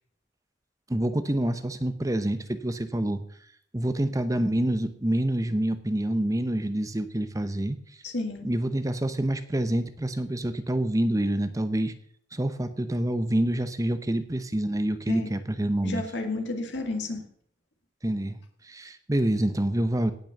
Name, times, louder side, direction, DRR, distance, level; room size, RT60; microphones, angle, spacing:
voice 1, 0.9-3.2 3.7-7.8 8.4-11.9 12.3-16.0 18.0-18.4 18.6-20.1, right 1 dB, 20° right, 11 dB, 0.8 m, -27 dB
voice 2, 8.0-8.4 15.1-15.3 15.8-17.3, left 2 dB, 75° left, 4 dB, 2.2 m, -31 dB
17.5 x 6.1 x 6.6 m, 0.63 s
head